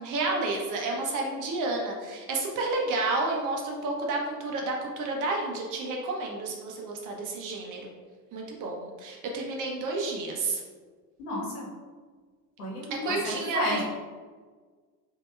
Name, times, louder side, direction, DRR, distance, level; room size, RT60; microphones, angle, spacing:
voice 1, 0.0-7.8 8.3-10.6 12.9-13.8, right 3 dB, 40° right, 0 dB, 0.8 m, -30 dB
voice 2, 11.2-11.7 12.6-13.8, left 1 dB, 65° left, -3 dB, 1.3 m, -32 dB
5.0 x 2.9 x 2.3 m, 1.5 s
figure-of-eight pair, 70°, 49 cm